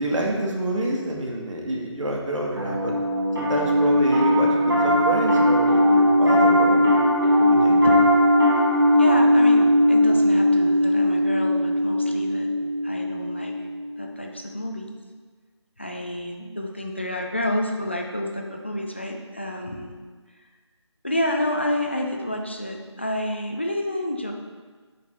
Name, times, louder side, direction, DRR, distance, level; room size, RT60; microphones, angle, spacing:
voice 1, 0.0-2.9 3.4-7.0 7.4-8.0, right 1 dB, 85° right, -1 dB, 1.9 m, -28 dB
Piano, 2.6-14.0, equal, 50° right, 2.1 m, -19 dB
voice 2, 9.0-12.5 12.8-13.5 14.0-14.9 15.8-19.9 21.0-24.3, left 1 dB, 25° left, 2 dB, 0.4 m, -29 dB
8.2 x 5.2 x 4.1 m, 1.4 s
figure-of-eight pair, 170°, 16 cm